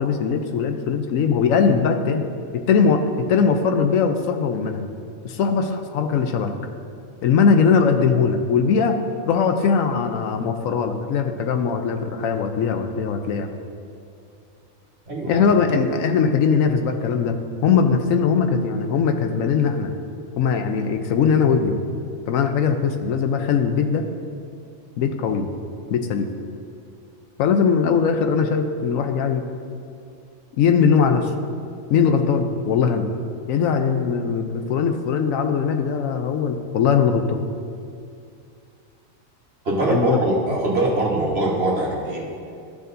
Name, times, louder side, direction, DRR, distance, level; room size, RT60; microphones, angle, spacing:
voice 1, 0.0-2.3 2.5-4.8 5.2-6.5 7.2-9.0 9.3-13.5 15.3-19.9 20.4-21.8 22.3-24.0 25.0-25.5 25.9-26.3 27.4-29.5 30.6-31.3 31.9-33.1 33.5-37.4 39.9-40.2, left 6 dB, 80° left, 6 dB, 1.0 m, -20 dB
voice 2, 15.1-15.5 39.6-42.3, right 2 dB, 50° right, -2 dB, 1.4 m, -22 dB
13.0 x 6.7 x 2.6 m, 2.4 s
omnidirectional pair, 1.4 m